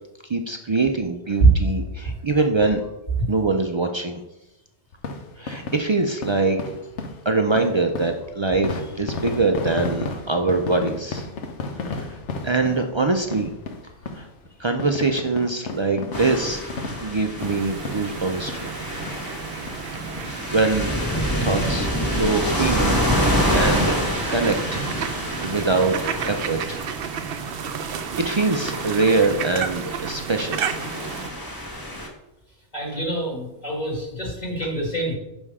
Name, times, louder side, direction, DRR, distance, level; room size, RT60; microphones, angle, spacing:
voice 1, 0.3-2.8 3.3-4.2 5.4-6.7 7.2-11.3 11.8-12.2 12.4-13.5 14.1-14.3 14.6-16.7 17.0-18.7 20.0-21.1 21.4-24.0 24.3-26.8 27.5-30.8, right 3 dB, 50° right, 5 dB, 0.3 m, -24 dB
sound 1, 4.9-18.8 19.1-19.2 19.7-19.8 20.2-20.3 20.6-21.6 22.0-22.1 22.3-22.4, left 3 dB, 85° left, 1.1 m, -34 dB
sound 2, 16.1-32.1, equal, 20° left, 1.3 m, -27 dB
sound 3, 17.4-31.3, right 7 dB, 65° right, 0.7 m, -32 dB
voice 2, 32.7-35.1, right 2 dB, 40° left, -3 dB, 1.8 m, -23 dB
6.2 x 5.5 x 4.8 m, 0.92 s
omnidirectional pair, 1.2 m